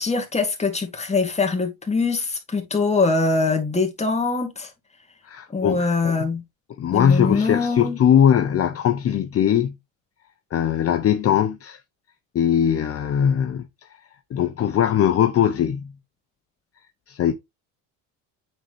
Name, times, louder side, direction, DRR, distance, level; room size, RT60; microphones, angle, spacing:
voice 1, 0.0-4.7 5.5-6.4 6.9-8.0, left 3 dB, 20° left, 2.4 m, -23 dB
voice 2, 5.2-6.2 6.8-9.8 10.5-11.8 12.3-13.7 14.3-15.9 17.1-17.3, left 9 dB, 40° left, 0.7 m, -20 dB
9.0 x 3.9 x 3.1 m
supercardioid pair, 100°, 36 cm